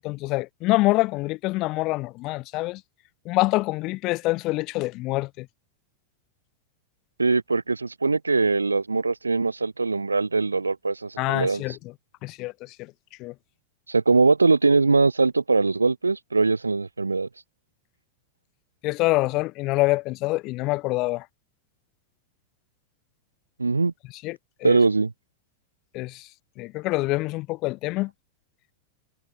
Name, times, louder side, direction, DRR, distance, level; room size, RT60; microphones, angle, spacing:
voice 1, 0.0-2.8 3.2-5.5 11.2-11.8 12.2-12.7 13.2-13.3 18.8-21.2 24.2-24.8 25.9-26.2 26.6-28.1, left 21 dB, 40° left, 3.2 m, -26 dB
voice 2, 7.2-11.6 13.9-17.3 23.6-23.9 24.6-25.1, right 3 dB, 80° right, 8.0 m, -21 dB
figure-of-eight pair, 90°, 0 cm